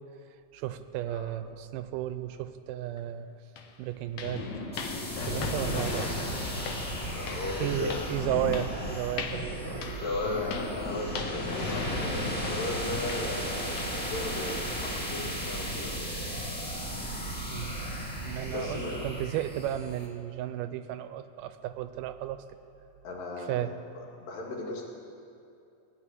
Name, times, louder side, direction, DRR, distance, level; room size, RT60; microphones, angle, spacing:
voice 1, 0.5-3.3 3.8-4.5 5.2-6.7 7.6-9.9 10.2-10.3 17.5-17.8 18.2-22.4 23.4-23.8, right 12 dB, 85° right, 11 dB, 2.2 m, -34 dB
sound 1, 3.0-3.1 3.6-14.2 14.5-14.8 15.1-15.3 15.8-15.9 16.4-16.5, left 6 dB, 70° left, 1.5 m, -43 dB
Thunder, 4.2-15.1, left 2 dB, 50° left, 1.3 m, -37 dB
sound 2, 4.7-20.1, right 1 dB, 10° left, 0.6 m, -36 dB
voice 2, 7.1-8.0 9.9-16.4 18.5-19.1 23.0-23.8 24.2-24.8, left 2 dB, 85° left, -2 dB, 3.7 m, -36 dB
17.5 x 6.0 x 9.8 m, 2.6 s
omnidirectional pair, 3.8 m